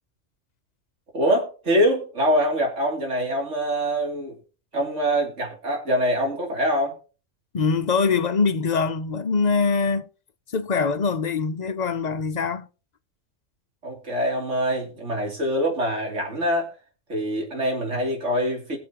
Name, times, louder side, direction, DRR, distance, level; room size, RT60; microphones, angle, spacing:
voice 1, 1.1-4.4 4.7-6.9 13.8-16.7 17.1-18.8, equal, 65° right, 3.2 m, -24 dB
voice 2, 7.5-10.1 10.5-12.7, left 5 dB, 50° left, 0.5 m, -23 dB
21.0 x 7.3 x 2.9 m
omnidirectional pair, 1.3 m